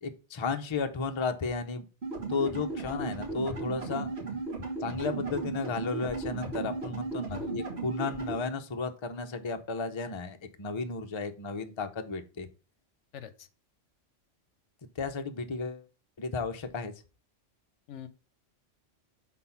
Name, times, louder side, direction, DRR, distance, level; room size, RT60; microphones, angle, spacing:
voice 1, 0.0-1.8 2.3-4.1 4.8-12.5 15.0-15.8 16.2-16.9, left 4 dB, 30° left, 0.6 m, -33 dB
sound 1, 2.0-8.4, right 3 dB, 55° right, 2.2 m, -35 dB
voice 2, 7.3-7.6 13.1-13.5 17.9-18.1, left 9 dB, 75° left, 1.0 m, -44 dB
6.1 x 4.1 x 5.7 m
omnidirectional pair, 1.3 m